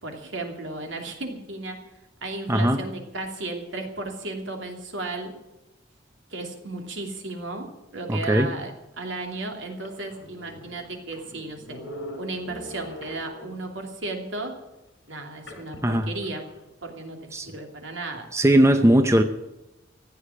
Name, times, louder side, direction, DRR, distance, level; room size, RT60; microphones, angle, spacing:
voice 1, 0.0-1.8 2.2-5.3 6.3-7.7 7.9-11.8 12.2-14.6 15.1-16.4 16.8-17.2 17.5-18.3, right 2 dB, 75° right, 3 dB, 2.8 m, -34 dB
voice 2, 2.5-2.8 8.1-8.5 15.8-16.1 17.3-17.5 18.3-19.2, right 1 dB, 15° right, 7 dB, 0.7 m, -19 dB
sound 1, 8.8-8.9 9.4-9.5 9.7-13.8 15.5-16.6, left 1 dB, 65° left, 4.5 m, -42 dB
14.5 x 8.7 x 9.9 m, 0.98 s
head